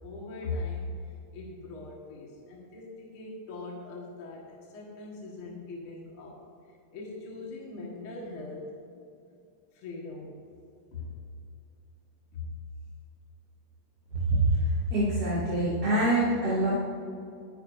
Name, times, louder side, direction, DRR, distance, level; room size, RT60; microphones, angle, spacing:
voice 1, 0.0-0.9 1.3-6.4 6.9-8.7 9.7-10.4 10.9-11.1 12.3-12.5, left 3 dB, 45° left, -3 dB, 2.2 m, -40 dB
voice 2, 14.9-16.7, right 1 dB, 30° right, -10 dB, 2.8 m, -25 dB
22.0 x 10.0 x 2.7 m, 2.5 s
omnidirectional pair, 4.0 m